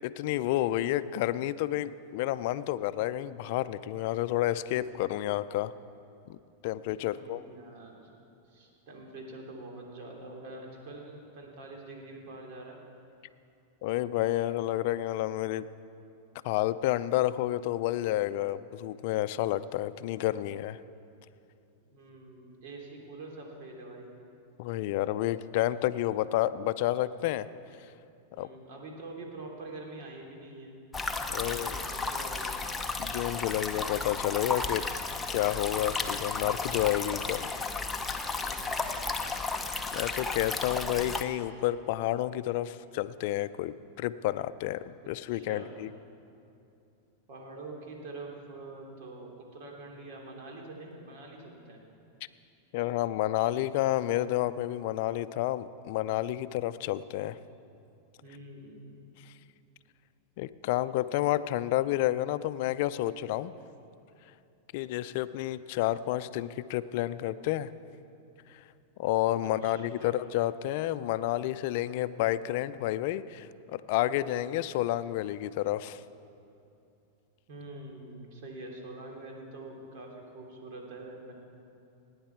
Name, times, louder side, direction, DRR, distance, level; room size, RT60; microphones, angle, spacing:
voice 1, 0.0-5.7 6.3-7.4 13.8-15.7 16.4-20.8 24.6-27.5 28.4-28.5 31.3-31.7 33.0-34.8 35.3-37.5 39.5-39.6 39.9-45.9 52.7-57.4 60.4-63.5 64.7-67.7 68.5-68.6 69.0-76.0, left 14 dB, 60° left, 14 dB, 0.4 m, -30 dB
voice 2, 7.0-8.0 8.5-12.8 21.8-24.1 28.3-30.8 31.4-32.6 38.3-39.0 45.0-45.8 47.3-51.8 58.2-58.8 69.4-69.7 70.0-70.2 77.5-81.3, right 2 dB, 60° right, 0 dB, 2.8 m, -45 dB
sound 1, 30.9-41.2, left 3 dB, 10° left, 0.7 m, -33 dB
18.0 x 9.6 x 4.5 m, 2.7 s
hypercardioid pair, 120°, 0 cm